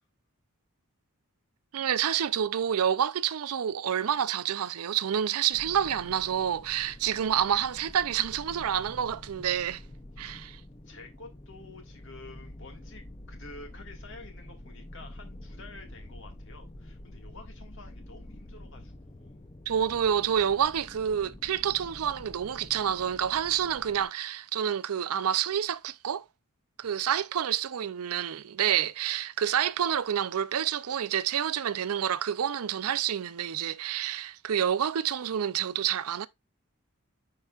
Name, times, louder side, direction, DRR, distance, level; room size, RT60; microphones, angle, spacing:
voice 1, 1.7-9.8 10.2-10.6 19.7-26.2 26.8-36.3, right 9 dB, 80° right, 0.5 m, -28 dB
sound 1, 5.5-24.0, left 1 dB, 25° left, 0.5 m, -47 dB
voice 2, 10.8-19.4, left 3 dB, 60° left, 1.8 m, -50 dB
9.9 x 4.7 x 2.4 m
head